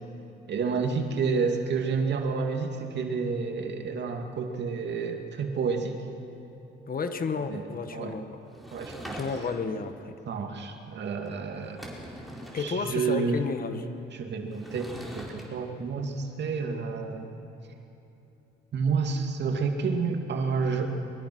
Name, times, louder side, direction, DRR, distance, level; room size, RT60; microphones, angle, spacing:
voice 1, 0.5-6.1 7.5-7.6 7.9-8.2 8.7-9.2 10.3-11.8 12.5-13.4 14.1-17.3 18.7-20.9, right 5 dB, 60° right, 4 dB, 2.5 m, -29 dB
voice 2, 6.9-8.4 9.1-10.2 12.5-13.9, left 4 dB, 45° left, 8 dB, 1.6 m, -32 dB
Sliding door / Wood, 8.5-9.8 11.3-11.4 11.6-12.7 14.5-15.4, equal, ahead, 4.6 m, -42 dB
23.0 x 22.5 x 6.3 m, 3.0 s
cardioid pair, 90°, 20 cm